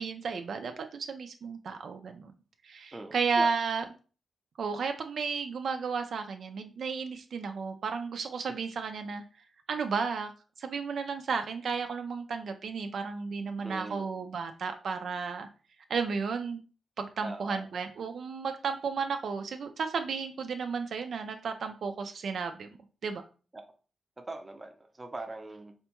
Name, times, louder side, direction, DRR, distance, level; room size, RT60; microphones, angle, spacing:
voice 1, 0.0-2.3 2.6-3.9 4.6-9.2 9.7-10.3 10.6-15.5 15.9-16.6 17.0-22.7 23.0-23.2, right 5 dB, 70° right, 6 dB, 0.3 m, -33 dB
voice 2, 2.9-3.5 13.6-14.1 17.2-17.7 23.5-23.6 24.2-25.7, right 2 dB, 20° right, 5 dB, 0.5 m, -41 dB
4.2 x 2.2 x 2.9 m, 0.37 s
wide cardioid pair, 115°, 0 cm